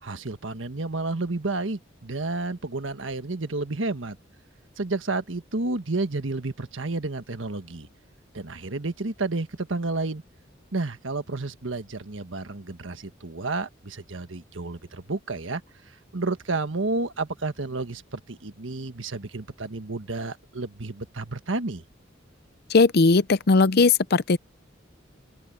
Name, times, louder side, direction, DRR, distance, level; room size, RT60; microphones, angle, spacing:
voice 1, 0.0-4.2 4.8-7.9 8.3-10.2 10.7-15.6 16.1-21.8, right 3 dB, 85° right, 1.4 m, -31 dB
voice 2, 22.7-24.4, left 4 dB, 55° left, 0.6 m, -18 dB
open air
head